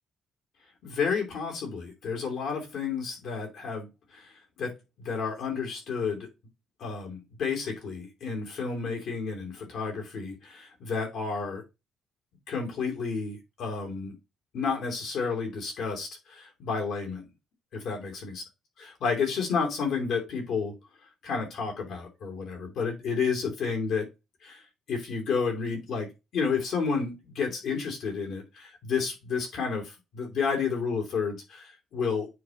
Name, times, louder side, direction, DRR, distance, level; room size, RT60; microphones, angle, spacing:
voice 1, 0.8-4.3 4.6-6.3 6.8-11.6 12.5-14.1 14.5-17.2 17.7-18.4 19.0-20.7 21.2-24.1 24.4-24.6 24.9-32.3, left 5 dB, 60° left, 2.9 m, -31 dB
9.3 x 3.1 x 3.7 m
cardioid pair, 170°, 0 cm